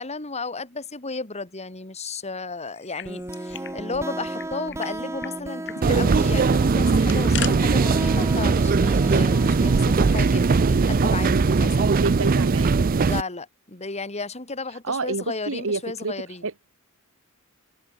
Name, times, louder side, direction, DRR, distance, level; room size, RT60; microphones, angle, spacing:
voice 1, 0.0-11.9 13.0-16.4, left 3 dB, 30° left, 3.4 m, -34 dB
sound 1, 2.7-3.8 4.0-4.1 4.4-4.9 5.2-5.3 5.6-5.8 6.8-7.5, left 11 dB, 55° left, 1.8 m, -36 dB
sound 2, 3.0-10.6, right 1 dB, 15° right, 1.1 m, -35 dB
sound 3, 5.8-13.2, right 4 dB, 40° right, 0.5 m, -20 dB
voice 2, 11.8-12.9 14.8-16.1 16.4-16.5, right 3 dB, 65° right, 1.4 m, -29 dB
head